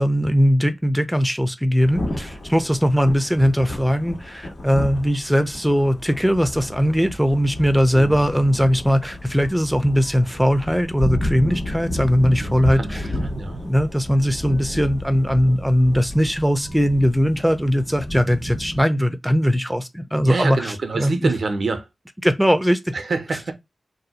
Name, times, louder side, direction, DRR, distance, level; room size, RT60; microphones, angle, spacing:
voice 1, 0.0-13.0 13.7-21.3 22.2-22.9, equal, ahead, 0.5 m, -20 dB
Thunder / Rain, 1.8-18.8, left 1 dB, 75° left, 1.3 m, -32 dB
voice 2, 7.9-8.3 12.4-13.7 20.2-21.9 22.9-23.5, right 4 dB, 75° right, 0.6 m, -27 dB
2.6 x 2.1 x 4.0 m
cardioid pair, 45°, 0 cm